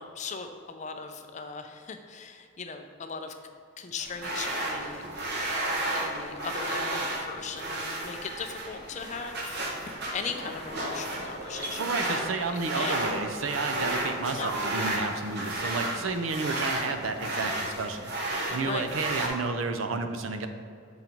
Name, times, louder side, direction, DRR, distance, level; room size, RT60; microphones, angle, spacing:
voice 1, 0.0-3.4 3.8-5.1 5.5-13.0 14.2-14.5 18.6-18.9, left 5 dB, 35° left, 6 dB, 0.4 m, -39 dB
sound 1, 4.0-19.3, right 1 dB, 55° right, 1.0 m, -33 dB
voice 2, 11.8-20.5, right 4 dB, 85° right, 7 dB, 0.5 m, -31 dB
7.1 x 3.9 x 4.4 m, 2.3 s
head